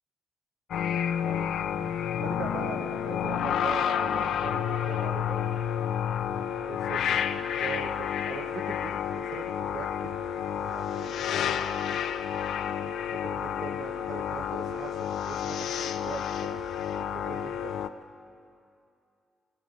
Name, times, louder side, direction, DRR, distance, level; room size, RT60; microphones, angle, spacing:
sound 1, 0.7-17.9, left 8 dB, 75° left, 0.7 m, -30 dB
voice 1, 1.0-1.5 2.2-5.4 6.6-7.2 7.5-11.3 12.4-16.7 17.1-17.7, right 6 dB, 75° right, 7 dB, 1.5 m, -42 dB
19.0 x 17.5 x 8.2 m, 2.4 s
cardioid pair, 160°, 0 cm